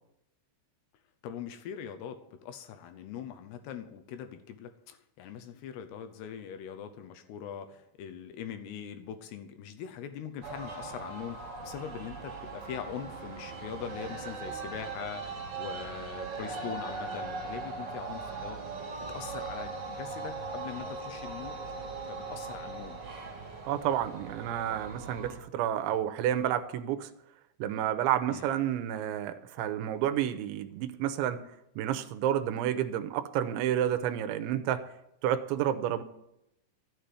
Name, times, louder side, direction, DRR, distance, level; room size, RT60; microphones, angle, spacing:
voice 1, 1.2-18.7 19.1-21.6 22.1-23.0 28.3-28.5, left 8 dB, 75° left, 8 dB, 2.5 m, -42 dB
sound 1, 10.4-25.4, right 4 dB, 35° right, 1.9 m, -40 dB
sound 2, 16.3-26.4, right 3 dB, 65° right, 1.6 m, -54 dB
voice 2, 23.7-27.1 27.6-31.4 31.8-34.9 35.2-36.0, right 11 dB, 85° right, 9 dB, 3.0 m, -30 dB
13.5 x 6.8 x 9.3 m, 0.83 s
omnidirectional pair, 5.5 m